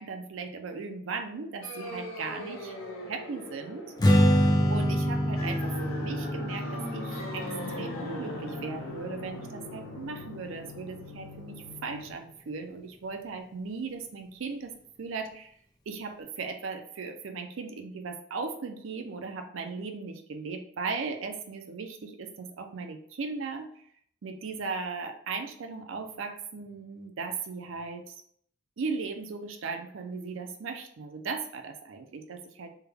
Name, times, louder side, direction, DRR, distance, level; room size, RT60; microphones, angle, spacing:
voice 1, 0.0-2.8 3.1-4.2 4.7-14.7 15.0-15.5 15.9-23.8 24.2-28.2 28.8-32.7, right 4 dB, 70° right, 6 dB, 0.5 m, -37 dB
sound 1, 1.6-12.1, left 1 dB, 80° left, 0.8 m, -40 dB
Strum, 4.0-10.3, equal, 20° left, 0.4 m, -27 dB
3.4 x 2.2 x 3.3 m, 0.64 s
head